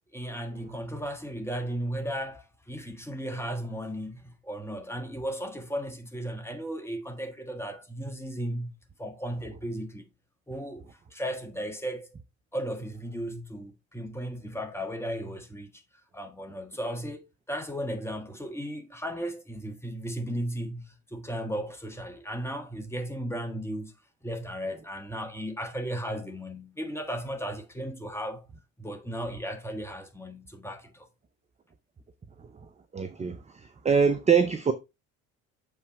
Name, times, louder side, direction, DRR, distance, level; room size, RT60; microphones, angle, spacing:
voice 1, 0.1-8.7 9.0-10.1 10.5-12.1 12.5-15.8 16.1-23.9 24.2-28.5 28.8-31.1, equal, 5° left, 1.4 m, -35 dB
voice 2, 32.9-33.4 33.8-34.7, right 6 dB, 15° right, 0.7 m, -23 dB
7.0 x 4.8 x 3.3 m
figure-of-eight pair, 60°, 42 cm